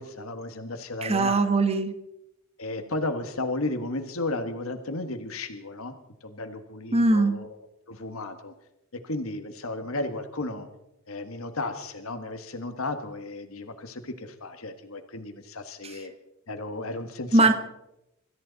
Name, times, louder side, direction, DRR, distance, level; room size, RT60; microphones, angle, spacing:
voice 1, 0.0-1.4 2.6-5.9 6.2-7.6 7.9-8.5 8.9-10.7 11.1-16.1 16.5-17.5, left 2 dB, 75° left, 7 dB, 1.5 m, -34 dB
voice 2, 1.0-1.9 6.9-7.4 15.8-15.9 17.3-17.5, right 2 dB, 30° right, 9 dB, 1.2 m, -21 dB
25.0 x 14.0 x 4.0 m, 0.86 s
head